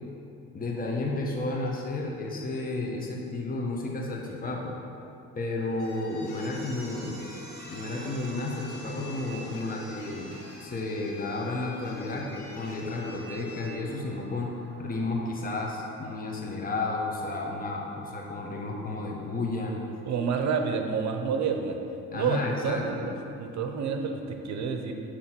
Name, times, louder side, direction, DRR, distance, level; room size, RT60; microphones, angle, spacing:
voice 1, 0.5-4.7 5.3-7.2 7.7-14.5 14.8-19.7 22.1-23.1, left 2 dB, 30° left, -2 dB, 1.0 m, -32 dB
sound 1, 5.4-13.7, left 2 dB, 85° left, 1.1 m, -47 dB
sound 2, 6.1-17.1, right 2 dB, 40° right, 1.4 m, -51 dB
voice 2, 20.1-21.8 22.1-24.9, right 6 dB, 65° right, 5 dB, 0.7 m, -29 dB
8.0 x 3.1 x 6.0 m, 2.7 s
cardioid pair, 90°, 30 cm